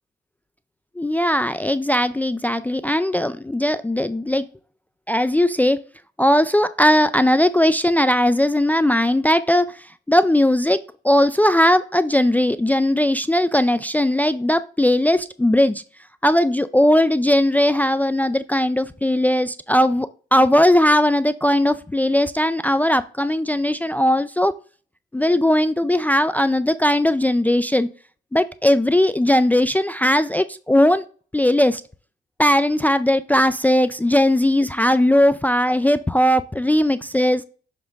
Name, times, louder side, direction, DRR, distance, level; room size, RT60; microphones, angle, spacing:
voice 1, 1.0-4.5 5.1-5.8 6.2-15.8 16.2-24.6 25.1-27.9 28.3-31.0 31.3-31.8 32.4-37.4, left 1 dB, 10° left, 0.3 m, -18 dB
7.3 x 3.7 x 3.5 m
cardioid pair, 90°, 20 cm